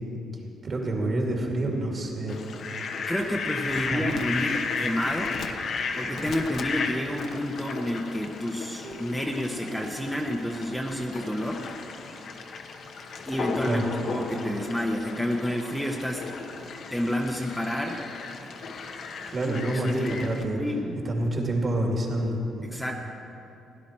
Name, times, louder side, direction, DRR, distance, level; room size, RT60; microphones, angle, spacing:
voice 1, 0.6-2.4 3.7-4.0 13.6-13.9 19.3-20.6 21.0-22.4, right 1 dB, 45° right, 0 dB, 2.4 m, -27 dB
Fowl, 2.3-20.4, left 4 dB, 60° left, 1.0 m, -35 dB
voice 2, 3.1-5.4 5.9-11.6 13.3-13.8 14.1-16.2 16.9-18.0 19.4-19.6 19.9-20.2 20.5-21.0 22.6-22.9, left 1 dB, 5° left, 1 dB, 0.9 m, -29 dB
sound 1, 8.8-11.8 13.5-14.9, right 4 dB, 70° right, 1.3 m, -46 dB
16.5 x 10.5 x 4.5 m, 2.9 s
cardioid pair, 90°, 0 cm